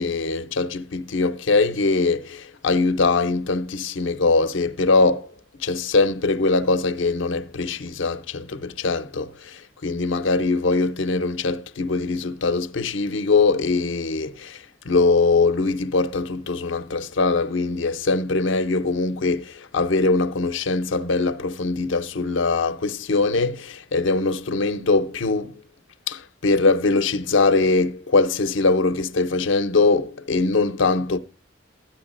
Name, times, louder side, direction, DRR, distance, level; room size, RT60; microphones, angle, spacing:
voice 1, 0.0-5.3 5.6-25.6 26.1-31.2, left 3 dB, 80° left, 0.7 m, -22 dB
13.0 x 9.7 x 2.5 m
head